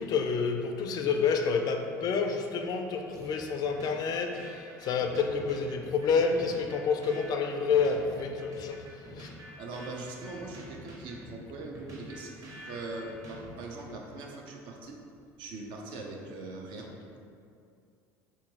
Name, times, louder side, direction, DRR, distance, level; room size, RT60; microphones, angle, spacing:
voice 1, 0.0-8.9 9.1-9.3, left 5 dB, 50° left, 5 dB, 0.3 m, -29 dB
sound 1, 3.1-13.9, equal, 35° right, 1.0 m, -47 dB
voice 2, 9.6-12.4 12.6-15.0 15.4-17.2, right 2 dB, 65° right, 1 dB, 0.5 m, -41 dB
3.6 x 2.9 x 2.7 m, 2.5 s
hypercardioid pair, 75°, 9 cm